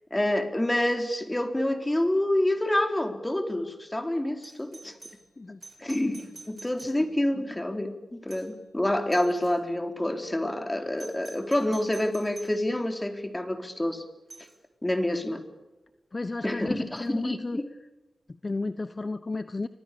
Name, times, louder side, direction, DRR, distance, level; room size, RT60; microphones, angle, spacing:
voice 1, 0.1-4.9 5.8-14.0 14.8-15.4 16.4-17.6, left 1 dB, 15° left, 6 dB, 4.3 m, -27 dB
Doorbell, 4.4-7.4 8.3-8.7 9.1-9.6 11.0-12.6 14.3-14.6 17.0-17.1, right 3 dB, 50° right, 7.5 m, -49 dB
voice 2, 16.1-17.6 18.3-19.7, left 3 dB, 35° left, 13 dB, 1.0 m, -33 dB
29.0 x 25.5 x 7.0 m, 1.1 s
wide cardioid pair, 70°, 0 cm